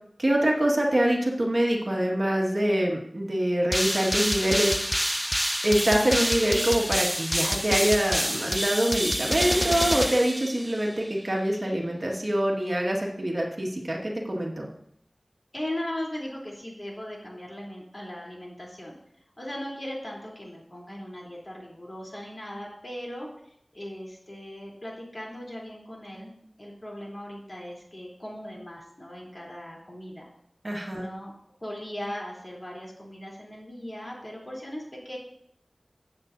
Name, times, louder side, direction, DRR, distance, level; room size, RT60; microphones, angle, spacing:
voice 1, 0.2-4.8 5.6-14.7 30.6-31.0, right 1 dB, 45° right, 0 dB, 1.7 m, -25 dB
sound 1, 3.7-11.0, equal, 10° right, 0.3 m, -27 dB
voice 2, 15.5-18.9 19.4-23.3 23.7-26.3 26.6-30.3 30.9-31.3 31.6-35.2, left 1 dB, 40° left, -3 dB, 3.3 m, -38 dB
14.5 x 8.2 x 2.7 m, 0.71 s
wide cardioid pair, 55°, 0 cm